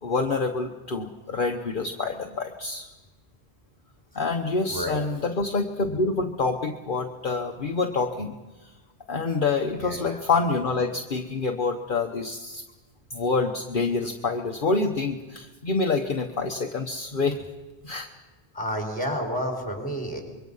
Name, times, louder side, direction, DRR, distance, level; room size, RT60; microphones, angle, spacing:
voice 1, 0.0-2.9 4.2-8.3 9.1-12.6 13.1-17.4 17.8-18.1, left 3 dB, 50° left, 3 dB, 1.2 m, -27 dB
voice 2, 4.7-5.0 9.8-10.2 18.5-20.2, equal, 5° left, 2 dB, 4.6 m, -30 dB
25.5 x 22.5 x 5.5 m, 1.2 s
omnidirectional pair, 1.1 m